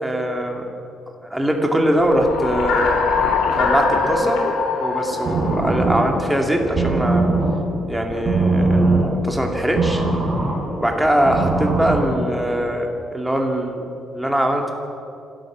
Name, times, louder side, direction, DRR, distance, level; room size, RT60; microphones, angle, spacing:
voice 1, 0.0-0.6 1.2-3.0 3.5-4.4 4.8-7.3 7.9-10.0 10.8-13.8 14.1-14.7, equal, 5° right, 2 dB, 2.3 m, -21 dB
sound 1, 1.9-6.6, left 4 dB, 90° left, 3.4 m, -23 dB
sound 2, 5.1-12.7, right 2 dB, 35° right, 5.2 m, -22 dB
27.5 x 13.0 x 7.3 m, 2.5 s
cardioid pair, 155°, 0 cm